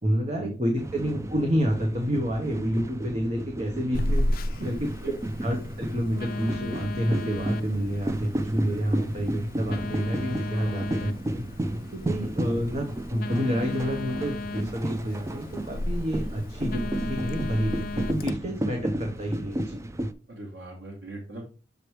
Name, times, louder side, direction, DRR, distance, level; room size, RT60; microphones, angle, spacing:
voice 1, 0.0-4.3 4.6-5.1 5.4-11.4 11.9-19.8, equal, 35° right, 1 dB, 1.1 m, -29 dB
sound 1, 0.8-20.1, right 1 dB, 15° right, 0.4 m, -33 dB
Telephone, 3.9-18.3, left 1 dB, 55° left, 0.5 m, -34 dB
voice 2, 20.3-21.4, right 1 dB, 90° right, -1 dB, 1.3 m, -40 dB
6.7 x 3.3 x 4.7 m, 0.35 s
head